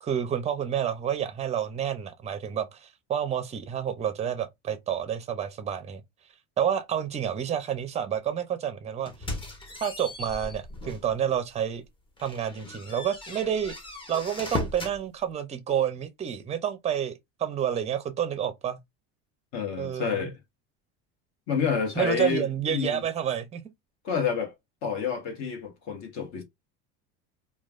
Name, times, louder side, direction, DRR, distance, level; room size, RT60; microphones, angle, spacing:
voice 1, 0.0-6.0 6.6-9.1 9.8-11.8 12.2-13.7 14.1-18.8 19.8-20.3 22.0-23.6, right 9 dB, 20° right, 0.5 m, -29 dB
sound 1, 9.1-11.1 11.6-11.7 12.2-15.0, left 2 dB, 15° left, 0.7 m, -37 dB
voice 2, 19.5-20.4 21.5-23.0 24.0-24.5 24.8-26.4, left 6 dB, 55° left, 1.2 m, -29 dB
3.0 x 2.3 x 2.4 m
supercardioid pair, 135°, 34 cm